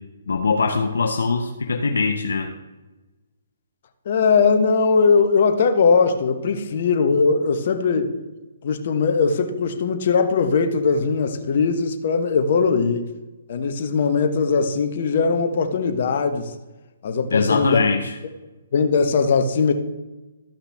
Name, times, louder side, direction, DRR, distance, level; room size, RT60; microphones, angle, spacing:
voice 1, 0.3-2.5 17.3-18.1, left 4 dB, 75° left, 4 dB, 0.7 m, -22 dB
voice 2, 4.0-8.1 8.6-13.1 13.5-16.5 17.0-17.8 18.7-19.7, left 5 dB, 55° left, 6 dB, 1.0 m, -20 dB
13.5 x 5.6 x 3.5 m, 1.1 s
figure-of-eight pair, 135°, 0 cm